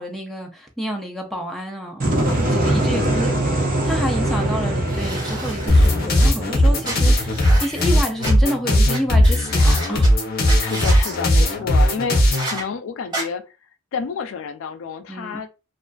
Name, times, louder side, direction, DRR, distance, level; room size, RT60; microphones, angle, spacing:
voice 1, 0.0-3.3 3.8-10.2 11.2-11.7 15.1-15.4, equal, ahead, 0.4 m, -29 dB
sound 1, 2.0-7.9, right 1 dB, 45° right, 0.6 m, -23 dB
voice 2, 2.9-3.4 10.6-13.5 13.9-15.5, left 6 dB, 80° left, 0.4 m, -30 dB
sound 2, 4.9-6.3 6.8-8.3 8.9-9.0 9.2-10.1 10.5-11.2 12.3-12.6 13.1-13.2, right 1 dB, 20° right, 1.0 m, -31 dB
sound 3, 5.7-12.5, equal, 50° left, 0.7 m, -17 dB
2.4 x 2.3 x 2.2 m
head